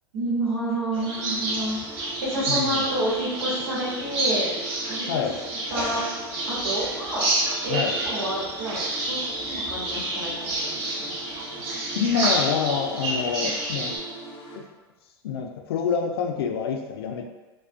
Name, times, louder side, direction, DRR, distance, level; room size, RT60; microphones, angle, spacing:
voice 1, 0.1-1.8 2.2-4.5 4.9-5.3 5.7-6.0 6.5-7.3 7.6-8.8 9.1-11.1 13.4-13.5, right 1 dB, 85° right, -7 dB, 1.0 m, -29 dB
sound 1, 0.9-14.0, right 2 dB, 50° right, 0.7 m, -29 dB
sound 2, 1.0-14.6, right 1 dB, 35° left, 0.6 m, -42 dB
voice 2, 2.5-2.8 5.1-5.4 7.7-7.9 11.9-14.0 14.6-14.7 15.2-17.2, left 6 dB, 80° left, 3 dB, 0.4 m, -27 dB
2.5 x 2.1 x 2.4 m, 1.2 s
hypercardioid pair, 90°, 13 cm